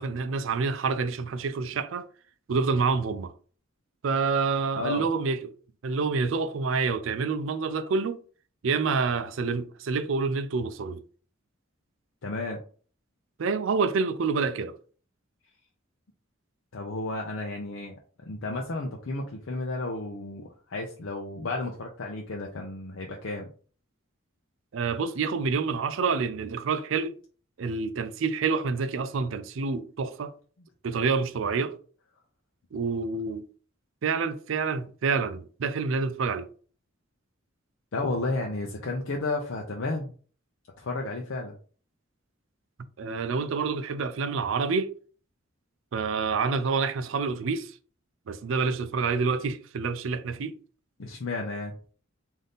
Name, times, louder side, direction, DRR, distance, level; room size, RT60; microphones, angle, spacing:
voice 1, 0.0-2.1 2.5-3.3 4.0-5.5 5.8-8.2 8.6-11.0 13.4-14.8 24.7-27.2 27.6-30.3 30.8-31.8 32.7-33.4 34.0-36.5 43.0-44.9 45.9-47.7 48.3-50.6, right 4 dB, 70° right, 0.4 m, -27 dB
voice 2, 12.2-12.6 16.7-18.0 18.3-23.5 37.9-40.1 40.8-41.5 51.0-51.8, left 2 dB, 70° left, 0.6 m, -32 dB
3.9 x 2.7 x 3.5 m
head